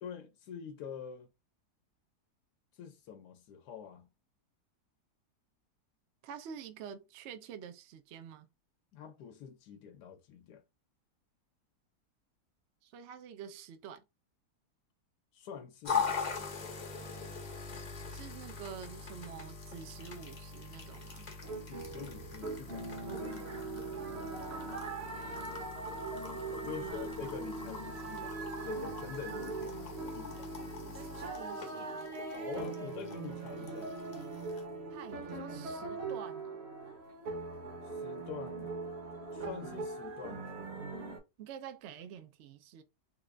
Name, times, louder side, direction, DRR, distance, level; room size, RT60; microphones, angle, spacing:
voice 1, 0.0-1.3 2.7-4.1 8.9-10.6 15.3-16.8 21.7-23.6 26.5-30.5 32.3-33.9 37.9-38.7 39.3-40.6, left 7 dB, 85° left, 1.2 m, -46 dB
voice 2, 6.2-8.5 12.8-14.0 18.1-21.3 25.2-25.6 26.6-27.2 30.8-32.3 34.9-36.7 41.4-42.8, right 8 dB, 65° right, 0.7 m, -48 dB
sound 1, 15.8-34.6, left 5 dB, 40° left, 0.6 m, -42 dB
sound 2, 21.4-41.2, right 3 dB, 45° right, 1.0 m, -41 dB
3.7 x 2.4 x 3.1 m
omnidirectional pair, 1.7 m